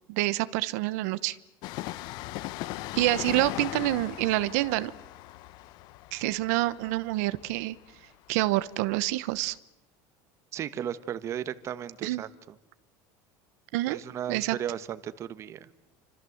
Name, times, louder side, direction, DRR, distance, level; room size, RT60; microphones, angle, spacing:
voice 1, 0.1-1.4 2.9-4.9 6.1-7.8 8.3-9.6 12.0-12.2 13.7-14.0 14.3-14.6, right 18 dB, 80° right, 15 dB, 1.0 m, -27 dB
Train, 1.6-9.1 9.3-9.4, left 17 dB, 60° left, 0.9 m, -39 dB
voice 2, 10.5-12.6 13.9-15.7, right 10 dB, 35° right, 14 dB, 1.3 m, -35 dB
29.0 x 25.5 x 7.9 m, 0.91 s
cardioid pair, 150°, 8 cm